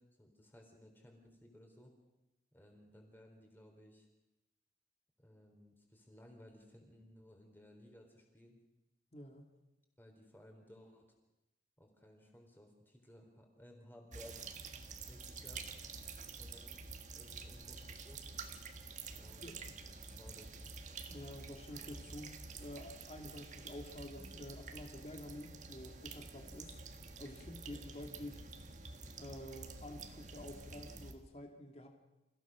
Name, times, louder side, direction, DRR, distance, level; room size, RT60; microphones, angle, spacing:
voice 1, 0.0-1.9 2.5-4.1 5.2-8.6 10.0-11.1 11.8-14.8 15.1-15.7 16.4-16.9 17.1-18.3 19.1-20.5, equal, 10° left, 2 dB, 4.0 m, -59 dB
voice 2, 9.1-9.5 19.4-19.7 20.9-26.8 27.2-28.4 29.2-31.9, left 1 dB, 35° left, 3 dB, 2.3 m, -49 dB
sound 1, 14.1-31.1, right 4 dB, 40° right, 1.7 m, -49 dB
28.5 x 16.0 x 6.2 m, 0.98 s
head